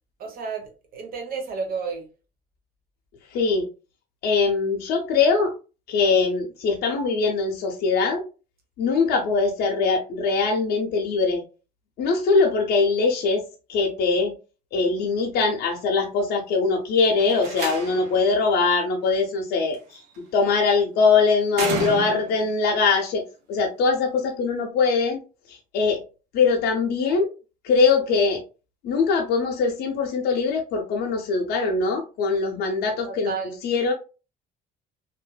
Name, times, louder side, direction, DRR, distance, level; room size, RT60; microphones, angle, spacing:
voice 1, 0.2-2.1 33.0-33.6, right 5 dB, 60° right, 1.0 m, -32 dB
voice 2, 3.3-3.7 4.2-5.5 5.9-8.2 8.8-11.4 12.0-13.4 13.7-14.3 14.7-20.0 20.3-23.2 23.5-25.2 25.5-26.0 26.3-27.3 27.6-28.4 28.8-33.3 33.6-33.9, left 4 dB, 75° left, 0.6 m, -22 dB
Slam, 17.2-18.2 19.7-20.2 21.5-22.5, right 4 dB, 90° right, 0.9 m, -31 dB
2.7 x 2.5 x 2.3 m
cardioid pair, 110°, 17 cm